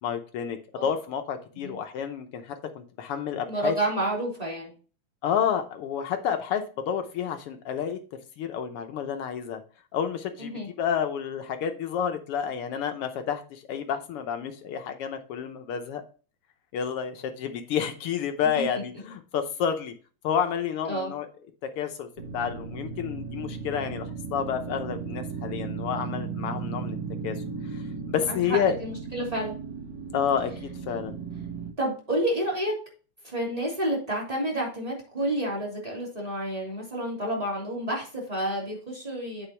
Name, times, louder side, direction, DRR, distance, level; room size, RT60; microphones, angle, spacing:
voice 1, 0.0-3.8 5.2-8.0 8.4-9.6 9.9-16.0 16.7-19.9 20.2-21.3 21.6-22.1 22.3-27.0 27.2-27.4 27.7-28.8 30.1-31.2, left 8 dB, 70° left, 6 dB, 1.4 m, -30 dB
voice 2, 3.5-4.7 10.4-10.7 18.5-18.6 20.9-21.1 28.3-29.6 31.8-32.7 33.2-39.5, right 1 dB, 10° right, -3 dB, 2.9 m, -30 dB
sound 1, 22.2-31.7, right 5 dB, 75° right, 2.8 m, -36 dB
8.8 x 4.9 x 4.4 m, 0.37 s
omnidirectional pair, 3.3 m